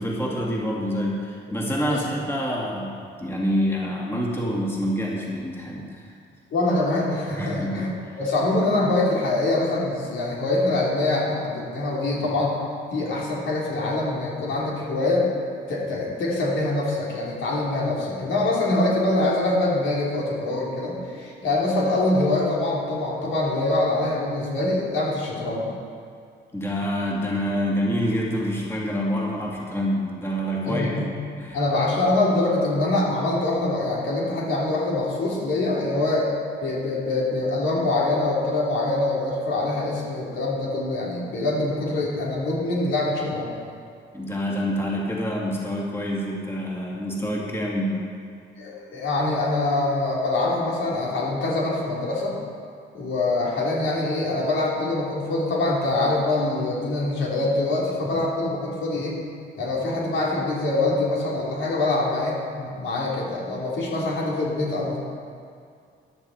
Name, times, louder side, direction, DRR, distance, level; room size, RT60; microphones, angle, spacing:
voice 1, 0.0-6.1 7.3-8.1 26.5-31.0 31.4-31.6 44.1-48.1, equal, 10° left, -3 dB, 2.4 m, -27 dB
voice 2, 6.5-7.9 8.2-12.5 12.9-15.3 15.7-25.7 30.6-31.1 31.5-36.3 36.6-43.5 48.6-52.3 52.9-59.2 59.6-65.0, left 2 dB, 75° left, -4 dB, 3.5 m, -24 dB
13.5 x 11.0 x 4.3 m, 2.3 s
cardioid pair, 90°, 20 cm